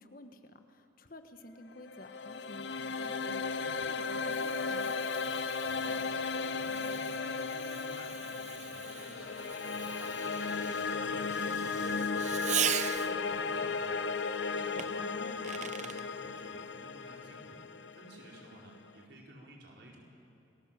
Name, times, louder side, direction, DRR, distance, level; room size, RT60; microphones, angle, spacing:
voice 1, 0.0-5.0 15.0-15.4, left 1 dB, 50° left, 7 dB, 1.4 m, -51 dB
sound 1, 1.8-18.9, left 4 dB, 75° left, 0.8 m, -35 dB
Fireworks, 3.4-13.4 14.8-16.1, right 10 dB, 40° right, 0.5 m, -40 dB
voice 2, 5.6-12.7 13.0-14.1 14.5-17.6 18.0-20.1, right 1 dB, 65° right, -1 dB, 4.7 m, -53 dB
28.5 x 19.5 x 7.6 m, 2.7 s
head